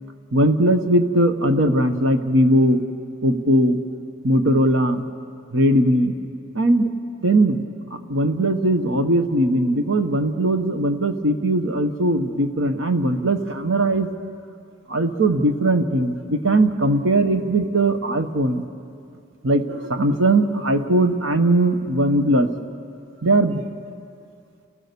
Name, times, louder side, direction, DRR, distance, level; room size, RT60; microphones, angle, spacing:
voice 1, 0.3-2.8 3.2-3.8 4.2-5.0 5.5-6.1 6.5-6.9 7.2-7.6 8.1-14.1 14.9-18.6 19.4-22.5 23.2-23.6, right 1 dB, 70° right, 8 dB, 1.2 m, -19 dB
29.0 x 15.0 x 6.9 m, 2.4 s
head